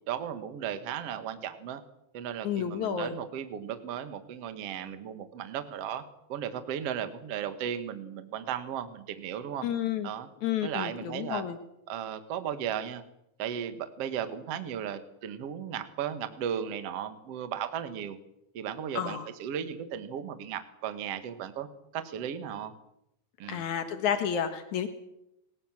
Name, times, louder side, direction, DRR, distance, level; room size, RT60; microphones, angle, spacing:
voice 1, 0.1-1.8 2.1-6.0 6.3-9.6 10.0-10.3 10.6-11.4 11.9-13.0 13.4-18.2 18.5-21.7 21.9-22.7 23.4-23.6, right 9 dB, 80° right, 10 dB, 1.3 m, -35 dB
voice 2, 2.4-3.1 9.6-10.1 10.4-11.6 18.9-19.3 23.4-24.9, left 9 dB, 80° left, 8 dB, 1.7 m, -30 dB
30.0 x 19.0 x 7.5 m, 0.84 s
omnidirectional pair, 5.8 m